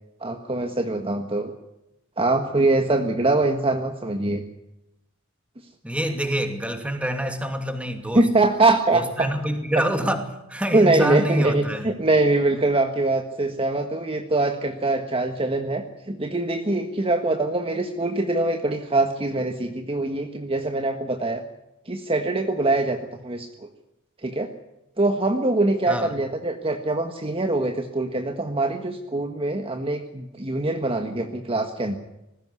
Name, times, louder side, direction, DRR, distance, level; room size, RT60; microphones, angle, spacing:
voice 1, 0.2-1.5 2.2-4.4 8.1-9.3 9.7-9.8 10.7-21.4 21.8-23.0 23.2-23.7 24.2-24.5 25.0-32.0, right 2 dB, 25° right, 5 dB, 1.5 m, -23 dB
voice 2, 5.8-8.3 8.9-11.9 25.9-26.1, equal, 5° right, 6 dB, 2.6 m, -26 dB
20.0 x 16.5 x 9.7 m, 0.89 s
head